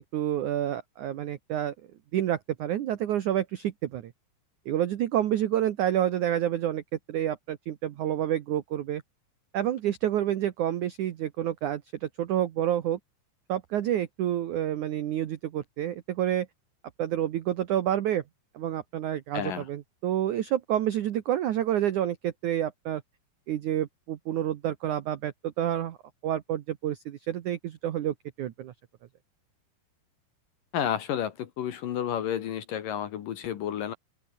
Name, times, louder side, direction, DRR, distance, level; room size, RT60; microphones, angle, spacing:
voice 1, 0.0-1.7 2.1-4.1 4.7-6.8 7.1-9.0 9.5-13.0 13.5-16.5 17.0-18.2 18.5-23.0 23.5-26.0 26.2-28.7, right 11 dB, 75° right, 1.8 m, -29 dB
voice 2, 19.3-19.7 30.7-33.9, left 9 dB, 60° left, 2.6 m, -31 dB
omnidirectional pair, 5.1 m